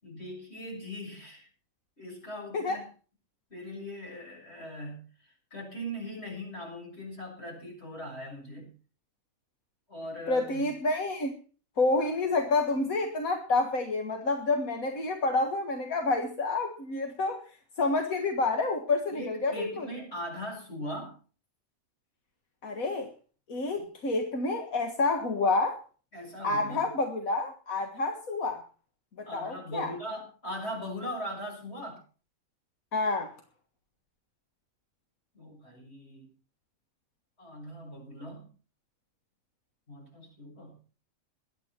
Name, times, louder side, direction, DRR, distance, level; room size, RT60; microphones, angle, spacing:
voice 1, 0.0-1.5 2.0-2.8 3.5-8.7 9.9-10.7 19.1-21.2 23.8-23.9 26.1-26.8 29.2-32.0 35.3-36.3 37.4-38.5 39.9-40.8, equal, 50° left, 0 dB, 6.9 m, -40 dB
voice 2, 10.3-11.3 11.8-17.4 17.8-19.9 22.6-23.1 23.5-25.8 26.4-28.6 29.2-30.0 32.9-33.3, left 3 dB, 80° left, 4 dB, 2.1 m, -28 dB
21.5 x 9.6 x 4.5 m, 0.38 s
omnidirectional pair, 1.4 m